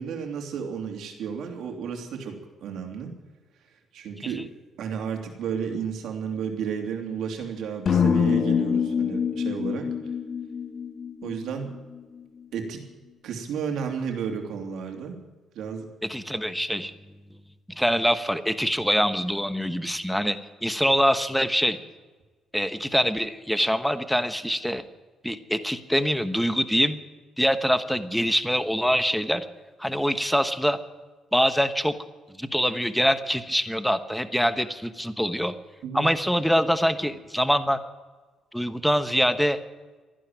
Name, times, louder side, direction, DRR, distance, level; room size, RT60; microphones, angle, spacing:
voice 1, 0.0-3.1 3.9-4.5 4.8-9.9 11.2-11.7 12.5-12.8 13.2-15.2 15.5-15.9 35.8-36.1, right 7 dB, 75° right, 3 dB, 3.0 m, -32 dB
sound 1, 7.9-12.0, left 7 dB, 50° left, 1.1 m, -25 dB
voice 2, 16.0-16.9 17.7-21.8 22.5-24.8 25.2-27.0 27.4-29.5 29.8-30.8 31.3-31.9 32.4-35.5 35.9-37.8 38.5-39.6, equal, ahead, 10 dB, 1.1 m, -24 dB
14.0 x 11.5 x 9.1 m, 1.3 s
cardioid pair, 90°, 0 cm